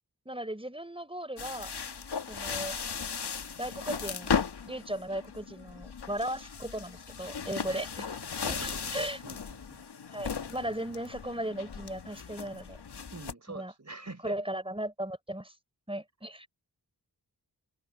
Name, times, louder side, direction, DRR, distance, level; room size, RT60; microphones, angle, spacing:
voice 1, 0.2-1.7 2.3-2.8 3.6-4.4 4.7-7.9 8.4-9.2 10.1-12.8 13.5-13.7 14.2-15.5 15.9-16.5, right 1 dB, 15° right, 4.7 m, -36 dB
sound 1, 1.4-13.3, left 6 dB, 70° left, 1.6 m, -37 dB
voice 2, 7.5-8.1 8.5-9.8 13.1-14.4, right 3 dB, 40° right, 4.7 m, -45 dB
cardioid pair, 40°, 41 cm